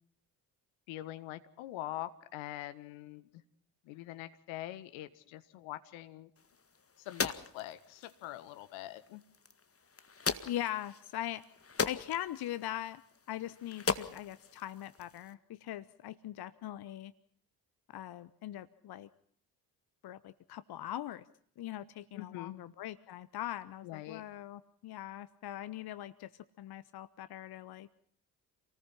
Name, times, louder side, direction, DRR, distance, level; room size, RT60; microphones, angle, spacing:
voice 1, 0.9-3.4 3.8-6.3 7.0-9.2 22.1-22.5 23.8-24.2, left 15 dB, 70° left, 12 dB, 1.6 m, -44 dB
sound 1, 6.4-15.3, left 5 dB, 30° left, 2.0 m, -40 dB
voice 2, 10.5-11.4 11.8-13.0 13.3-17.1 17.9-19.1 20.0-21.2 21.6-26.3 26.6-27.9, left 13 dB, 50° left, 16 dB, 1.0 m, -41 dB
28.0 x 19.0 x 5.7 m, 0.63 s
figure-of-eight pair, 40°, 49 cm